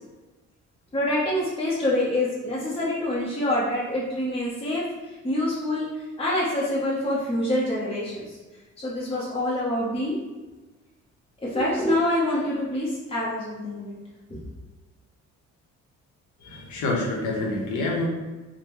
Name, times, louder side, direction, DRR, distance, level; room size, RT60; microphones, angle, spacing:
voice 1, 0.9-8.4 8.8-10.2 11.4-13.9 14.3-14.4, left 1 dB, 20° left, -7 dB, 0.8 m, -26 dB
voice 2, 16.4-18.1, left 2 dB, 75° left, -1 dB, 0.8 m, -27 dB
3.4 x 2.1 x 3.0 m, 1.2 s
cardioid pair, 90°, 30 cm